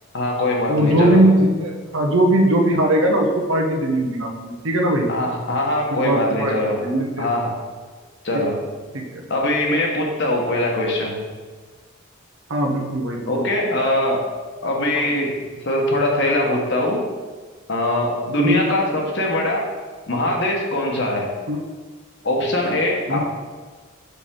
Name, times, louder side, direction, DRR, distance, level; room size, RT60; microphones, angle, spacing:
voice 1, 0.1-1.2 5.1-6.8 7.2-7.6 8.2-8.6 9.3-11.2 13.3-14.2 14.6-15.3 15.6-17.0 17.7-19.7 20.1-21.3 22.2-23.2, left 1 dB, 55° left, -1 dB, 1.3 m, -22 dB
voice 2, 0.7-5.1 5.9-6.5 6.8-7.3 8.3-8.4 8.9-9.0 12.5-13.4 18.4-18.7 21.5-21.6 23.1-23.2, right 1 dB, 70° right, 1 dB, 1.1 m, -19 dB
6.9 x 6.1 x 3.8 m, 1.4 s
head